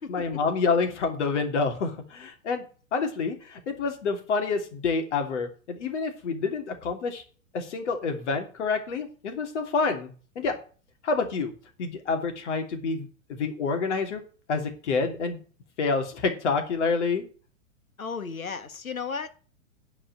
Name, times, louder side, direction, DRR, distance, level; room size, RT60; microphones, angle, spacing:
voice 1, 0.1-2.6 2.9-7.2 7.5-10.1 10.3-10.6 11.0-11.5 11.8-14.2 14.5-15.4 15.8-17.3, left 4 dB, 55° left, 3.0 m, -28 dB
voice 2, 18.0-19.3, left 5 dB, 80° left, 1.4 m, -34 dB
10.0 x 5.0 x 7.6 m
figure-of-eight pair, 110°, 41 cm